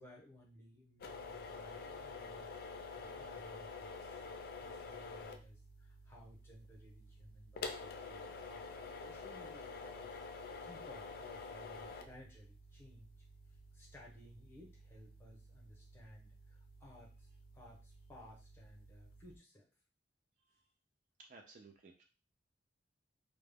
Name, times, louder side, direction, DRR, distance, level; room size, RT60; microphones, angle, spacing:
voice 1, 0.0-2.5 2.9-13.1 13.7-17.3 17.5-19.7, left 1 dB, 15° left, -3 dB, 0.8 m, -59 dB
sound 1, 1.0-19.4, left 4 dB, 55° left, 0.3 m, -49 dB
voice 2, 21.2-22.0, right 3 dB, 45° right, 3 dB, 0.4 m, -58 dB
2.2 x 2.0 x 3.3 m, 0.32 s
head